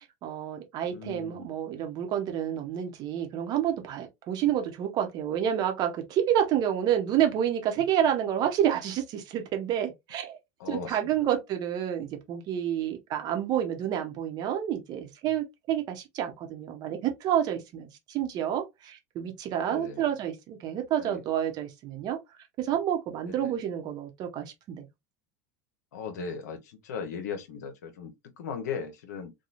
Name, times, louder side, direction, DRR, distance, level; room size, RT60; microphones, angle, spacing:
voice 1, 0.2-10.4 10.7-22.2 22.6-24.8, right 10 dB, 45° right, 0.9 m, -29 dB
voice 2, 0.9-1.5 10.6-11.3 19.6-20.0 21.0-21.2 23.3-23.5 25.9-29.3, left 6 dB, 75° left, 0.8 m, -38 dB
2.9 x 2.3 x 2.5 m
hypercardioid pair, 85°, 9 cm